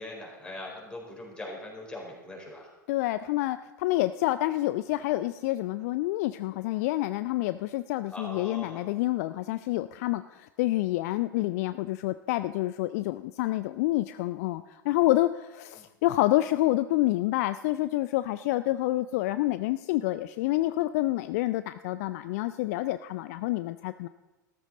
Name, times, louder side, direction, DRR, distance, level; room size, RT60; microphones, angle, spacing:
voice 1, 0.0-2.7 8.1-8.8 15.8-15.9, left 1 dB, 10° left, -2 dB, 4.2 m, -41 dB
voice 2, 2.9-24.1, left 17 dB, 50° left, 13 dB, 0.4 m, -28 dB
14.0 x 13.0 x 4.1 m, 1.1 s
figure-of-eight pair, 85°, 11 cm